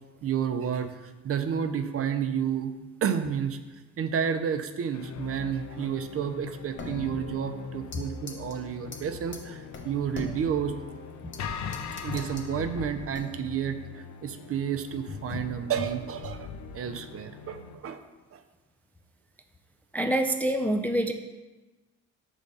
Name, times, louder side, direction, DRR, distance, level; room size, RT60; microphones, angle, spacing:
voice 1, 0.2-2.7 3.0-3.6 4.0-10.8 12.0-18.0 18.3-18.4, right 8 dB, 50° right, 8 dB, 0.5 m, -31 dB
sound 1, 4.9-17.8, left 6 dB, 65° left, 0.6 m, -40 dB
sound 2, 6.8-8.0 8.3-8.6 8.9-9.0 9.3-9.4 9.7-11.4 11.7-12.5 13.1-13.6, left 2 dB, 40° left, 0.9 m, -40 dB
voice 2, 19.9-21.1, right 1 dB, 5° left, 5 dB, 0.3 m, -26 dB
5.3 x 3.6 x 5.2 m, 1.1 s
cardioid pair, 90°, 30 cm